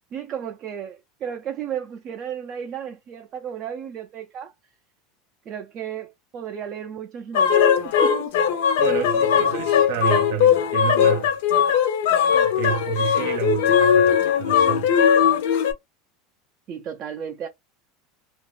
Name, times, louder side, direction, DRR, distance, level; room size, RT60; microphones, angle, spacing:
voice 1, 0.1-4.5 5.5-8.3 16.7-17.5, right 8 dB, 30° right, 0.4 m, -34 dB
sound 1, 7.3-15.7, left 8 dB, 70° left, 0.5 m, -19 dB
voice 2, 8.8-11.3 12.3-14.9, right 10 dB, 65° right, 0.6 m, -29 dB
2.4 x 2.0 x 3.1 m
supercardioid pair, 175°, 0 cm